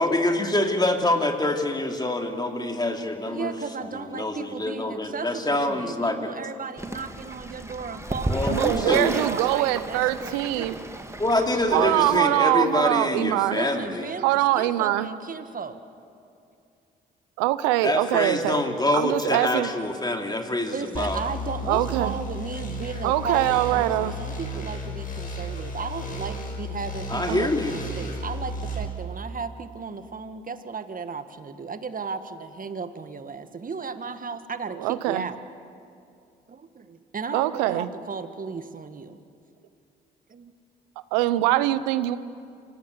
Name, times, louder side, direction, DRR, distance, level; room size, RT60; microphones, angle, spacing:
voice 1, 0.0-3.5 4.1-6.3 8.3-9.1 11.2-14.1 17.8-21.2 27.1-27.7, left 1 dB, 20° left, 3 dB, 3.0 m, -25 dB
voice 2, 3.2-10.8 13.3-15.8 20.7-35.4 36.5-39.2 40.3-40.5, right 5 dB, 40° right, 10 dB, 1.7 m, -35 dB
Fowl / Bird, 6.8-12.2, right 1 dB, 15° right, 2.0 m, -33 dB
voice 3, 8.5-10.8 11.7-13.6 14.2-15.1 17.4-18.6 18.9-19.7 21.7-22.1 23.0-24.1 27.3-27.5 34.8-35.3 37.3-37.9 41.1-42.2, right 15 dB, 90° right, 15 dB, 0.7 m, -23 dB
sound 1, 20.9-28.8, equal, 40° left, 5.8 m, -33 dB
26.5 x 18.0 x 8.0 m, 2.5 s
hypercardioid pair, 50°, 21 cm